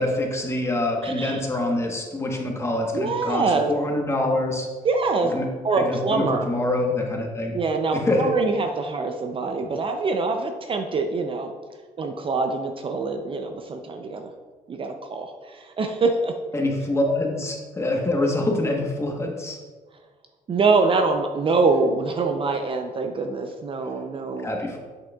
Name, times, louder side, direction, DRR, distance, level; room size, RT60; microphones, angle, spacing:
voice 1, 0.0-4.7 5.3-5.5 5.8-7.6 7.9-8.3 16.5-19.6 24.4-24.8, left 1 dB, 20° left, 1 dB, 1.1 m, -25 dB
voice 2, 1.0-1.4 2.9-3.7 4.8-5.3 5.6-6.5 7.5-11.5 12.0-14.3 14.7-16.3 20.5-24.5, right 4 dB, 40° right, 5 dB, 0.5 m, -24 dB
7.6 x 6.2 x 2.3 m, 1.4 s
cardioid pair, 110°, 14 cm